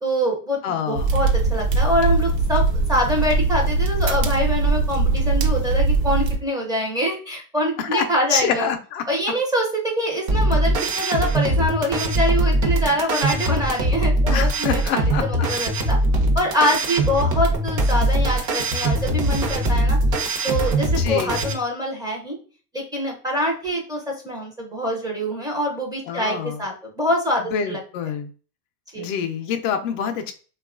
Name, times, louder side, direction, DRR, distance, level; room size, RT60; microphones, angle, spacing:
voice 1, 0.0-2.6 2.9-8.7 9.1-16.0 16.3-20.0 20.4-22.4 22.7-27.8 28.9-29.1, equal, 10° right, -1 dB, 0.6 m, -25 dB
voice 2, 0.6-1.1 7.8-9.0 14.3-15.5 21.0-21.4 26.1-26.6 27.4-28.3 29.0-30.3, left 7 dB, 55° left, 6 dB, 0.5 m, -26 dB
sound 1, 0.9-6.4, right 3 dB, 85° right, 0.7 m, -21 dB
sound 2, 10.3-21.5, right 1 dB, 40° right, 0.8 m, -21 dB
2.9 x 2.3 x 2.4 m, 0.38 s
supercardioid pair, 120°, 48 cm